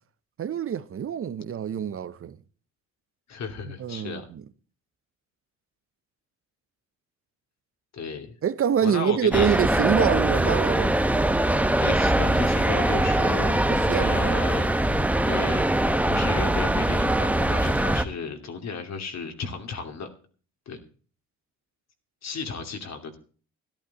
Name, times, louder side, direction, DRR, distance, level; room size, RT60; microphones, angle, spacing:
voice 1, 0.4-2.4 3.8-4.4 8.4-11.0 13.4-14.4, right 8 dB, 45° right, 0.8 m, -26 dB
voice 2, 3.3-4.3 7.9-8.3 8.8-9.6 11.8-14.7 15.2-15.7 16.0-20.1 20.7-20.8 22.2-23.2, left 5 dB, 60° left, 2.8 m, -34 dB
sound 1, 9.3-18.0, right 1 dB, 5° right, 1.0 m, -22 dB
14.0 x 12.0 x 4.2 m
cardioid pair, 90°, 30 cm